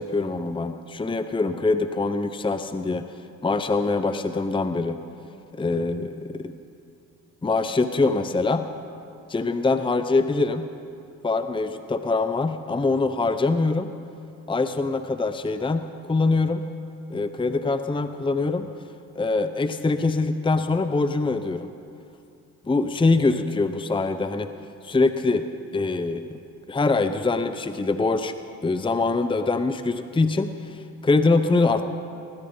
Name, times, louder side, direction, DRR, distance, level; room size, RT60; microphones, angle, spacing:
voice 1, 0.0-3.0 3.4-5.0 5.5-6.6 7.4-8.7 9.3-10.7 11.2-13.9 14.5-16.6 17.1-18.7 19.2-21.7 22.7-24.5 24.8-25.5 25.7-26.4 26.7-28.3 28.6-31.9, left 3 dB, 15° left, 10 dB, 0.8 m, -24 dB
19.5 x 17.0 x 3.9 m, 2.6 s
supercardioid pair, 65°, 36 cm